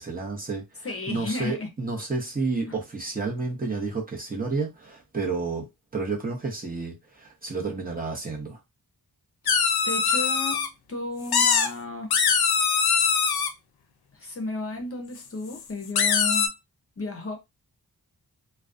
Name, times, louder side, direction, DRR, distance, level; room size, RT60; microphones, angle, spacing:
voice 1, 0.0-5.7 5.9-8.6, right 3 dB, 25° right, 0.7 m, -31 dB
voice 2, 0.8-1.7 2.7-2.8 9.4-9.6 9.8-12.2 14.1-16.5 17.0-17.4, left 2 dB, 40° left, 0.6 m, -33 dB
sound 1, 9.5-10.7 11.3-11.7 12.1-13.5 15.6-15.7 15.9-16.5, left 6 dB, 90° left, 0.5 m, -22 dB
2.4 x 2.1 x 2.4 m
wide cardioid pair, 105°, 36 cm